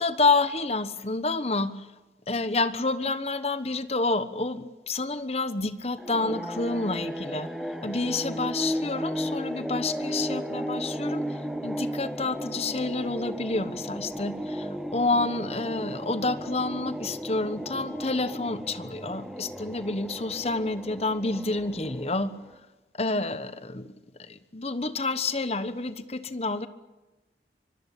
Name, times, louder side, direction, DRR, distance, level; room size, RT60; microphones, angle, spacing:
voice 1, 0.0-1.9 2.3-7.5 7.8-22.3 23.0-23.9 24.2-26.7, left 3 dB, 35° left, 12 dB, 1.2 m, -29 dB
sound 1, 6.0-22.6, equal, ahead, 1.7 m, -35 dB
25.0 x 21.5 x 8.5 m, 1.1 s
head